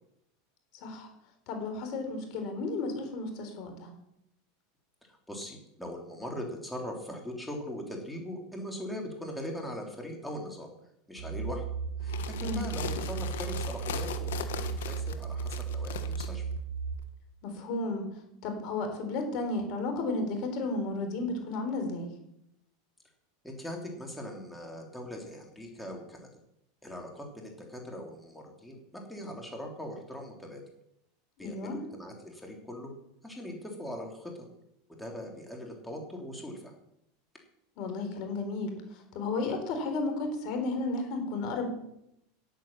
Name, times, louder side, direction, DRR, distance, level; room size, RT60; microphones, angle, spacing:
voice 1, 0.7-1.1 1.5-3.9 12.4-12.6 17.4-22.1 31.4-31.8 37.8-41.7, left 3 dB, 55° left, 5 dB, 3.9 m, -33 dB
voice 2, 5.1-10.7 11.1-11.6 12.0-16.4 23.4-26.3 26.8-30.6 31.4-32.9 33.2-34.4 35.0-36.7, equal, 5° left, 0 dB, 3.2 m, -41 dB
sound 1, 11.2-16.9, right 6 dB, 75° right, 2.0 m, -35 dB
sound 2, 12.0-16.3, left 8 dB, 80° left, 1.3 m, -39 dB
10.5 x 9.1 x 7.4 m, 0.79 s
hypercardioid pair, 105°, 0 cm